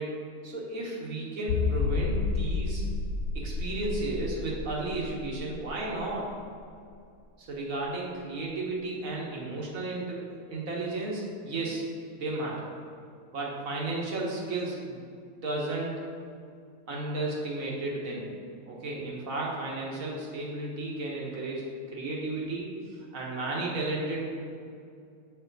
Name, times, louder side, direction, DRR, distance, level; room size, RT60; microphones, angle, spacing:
voice 1, 0.0-2.8 3.3-6.3 7.5-11.8 12.1-12.7 13.3-15.0 15.4-16.0 16.9-18.3 18.7-22.7 23.1-24.3, right 2 dB, 70° right, -3 dB, 1.6 m, -33 dB
sound 1, 1.5-6.9 7.2-7.3 7.8-7.9, left 4 dB, 70° left, 0.8 m, -31 dB
6.8 x 5.1 x 4.0 m, 2.4 s
omnidirectional pair, 1.5 m